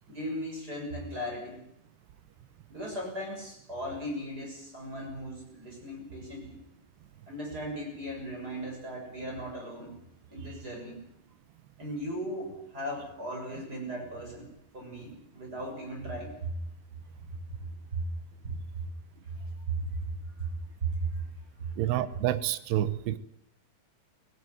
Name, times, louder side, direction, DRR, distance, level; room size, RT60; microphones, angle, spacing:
voice 1, 0.1-1.6 2.7-6.6 7.3-10.0 10.3-11.0 11.8-16.5 17.9-18.0 18.4-18.8 19.7-20.1 20.4-20.5 20.8-21.2 21.6-21.7, right 1 dB, 20° right, 0 dB, 6.9 m, -37 dB
voice 2, 21.8-23.2, right 13 dB, 85° right, 14 dB, 3.0 m, -28 dB
20.0 x 16.0 x 9.3 m, 0.77 s
omnidirectional pair, 4.8 m